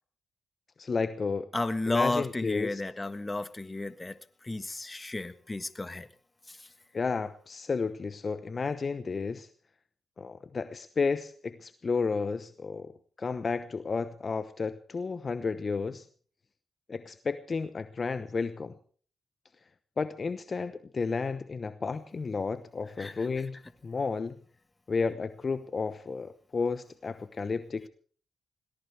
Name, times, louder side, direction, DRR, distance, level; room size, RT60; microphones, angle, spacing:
voice 1, 0.8-1.5 1.9-2.8 6.9-9.5 10.2-12.9 13.2-16.1 16.9-18.7 20.0-24.4 24.9-27.9, left 4 dB, 50° left, 12 dB, 0.9 m, -32 dB
voice 2, 1.5-6.1 6.5-6.7 23.0-23.3, left 2 dB, 25° left, 12 dB, 1.5 m, -33 dB
21.5 x 18.5 x 3.4 m, 0.43 s
supercardioid pair, 45°, 0 cm